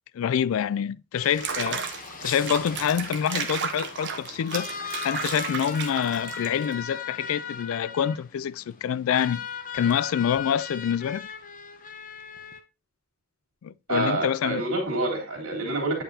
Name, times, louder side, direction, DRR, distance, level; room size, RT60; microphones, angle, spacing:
voice 1, 0.1-4.7 5.0-9.5 9.7-11.3 13.6-14.6, left 8 dB, 70° left, 0.3 m, -26 dB
sound 1, 1.2-12.6, left 6 dB, 40° left, 0.7 m, -38 dB
Water / Bathtub (filling or washing), 1.2-6.7, right 6 dB, 55° right, 1.0 m, -33 dB
voice 2, 13.9-16.0, right 2 dB, 75° right, 3.3 m, -27 dB
9.0 x 5.5 x 2.8 m
head